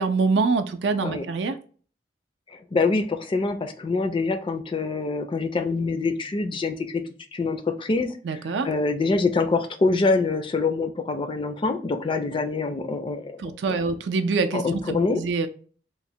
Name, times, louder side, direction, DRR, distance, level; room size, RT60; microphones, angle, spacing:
voice 1, 0.0-1.6 8.2-8.7 13.4-15.5, right 4 dB, 75° right, 8 dB, 0.4 m, -25 dB
voice 2, 2.5-7.0 7.3-8.1 8.6-13.4 14.5-15.2, left 3 dB, 30° left, 7 dB, 0.4 m, -25 dB
3.0 x 2.1 x 2.6 m, 0.41 s
head